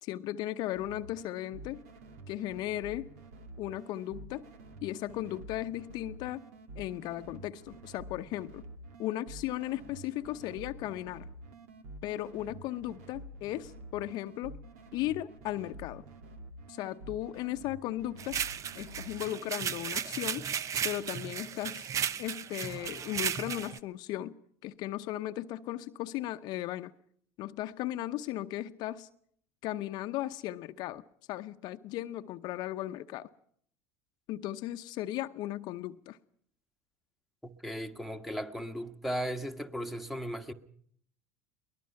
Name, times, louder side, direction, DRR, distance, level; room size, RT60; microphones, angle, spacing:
voice 1, 0.0-1.8 2.3-3.1 3.6-4.5 4.8-6.5 6.8-8.6 9.0-11.3 12.0-14.6 14.9-16.0 16.7-18.4 18.7-20.5 20.8-21.9 22.2-24.4 24.6-26.9 27.4-29.1 29.6-33.3 34.3-36.2, left 14 dB, 55° left, 0.9 m, -36 dB
sound 1, 0.7-19.5, right 2 dB, 70° right, 2.4 m, -49 dB
sound 2, 18.2-23.8, right 8 dB, 40° right, 0.9 m, -35 dB
voice 2, 37.4-40.5, equal, ahead, 1.5 m, -36 dB
22.5 x 20.0 x 5.8 m
hypercardioid pair, 80°, 8 cm